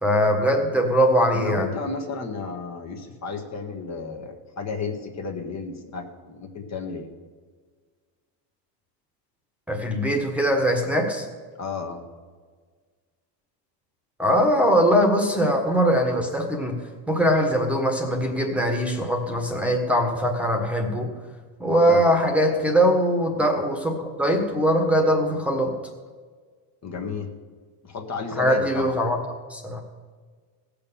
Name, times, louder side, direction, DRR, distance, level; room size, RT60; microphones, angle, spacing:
voice 1, 0.0-1.7 9.7-11.2 14.2-16.8 17.1-21.1 21.6-25.7 28.4-29.2 29.5-29.8, equal, 5° right, 2 dB, 1.5 m, -21 dB
voice 2, 1.3-7.1 11.6-12.0 21.8-22.0 26.8-27.3 27.8-29.0, left 4 dB, 35° left, 3 dB, 1.6 m, -33 dB
17.5 x 6.8 x 7.1 m, 1.5 s
cardioid pair, 140°, 49 cm